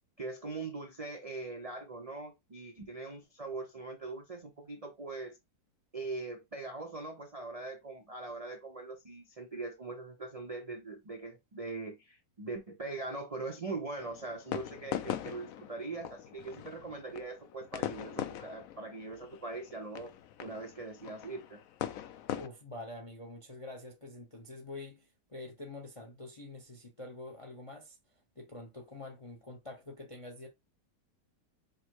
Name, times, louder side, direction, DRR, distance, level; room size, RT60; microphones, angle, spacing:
voice 1, 0.2-5.4 5.9-20.1 20.4-21.6, right 3 dB, 75° right, 0.3 m, -41 dB
sound 1, 14.0-22.5, left 11 dB, 70° left, 0.8 m, -41 dB
voice 2, 22.4-28.0 28.4-30.5, left 2 dB, 45° left, 0.4 m, -46 dB
5.1 x 2.1 x 4.5 m
omnidirectional pair, 1.9 m